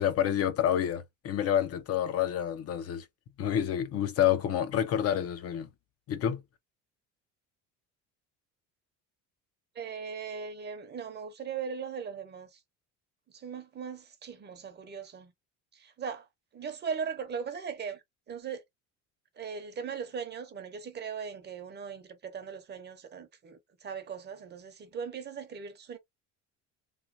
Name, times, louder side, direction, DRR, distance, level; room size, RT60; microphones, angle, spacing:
voice 1, 0.0-3.0 3.4-5.7 6.1-6.4, left 10 dB, 45° left, 0.6 m, -28 dB
voice 2, 9.7-12.6 13.3-15.3 15.7-16.3 16.5-18.6 19.4-26.0, right 6 dB, 30° right, 0.8 m, -39 dB
3.1 x 2.2 x 2.6 m
cardioid pair, 130°, 34 cm